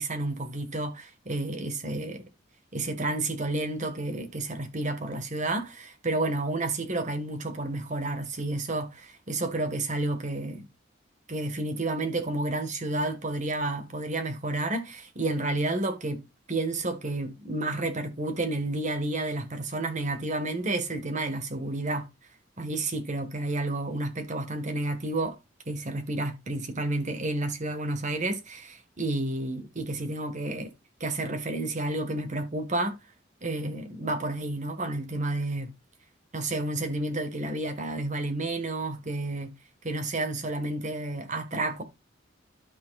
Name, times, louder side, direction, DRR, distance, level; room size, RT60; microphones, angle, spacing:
voice 1, 0.0-2.2 2.7-10.6 11.3-16.2 16.5-22.1 22.6-25.4 25.7-30.7 31.0-33.0 33.4-35.7 36.3-39.5 39.8-41.8, right 2 dB, 40° right, 1.7 m, -30 dB
12.0 x 6.2 x 2.4 m
head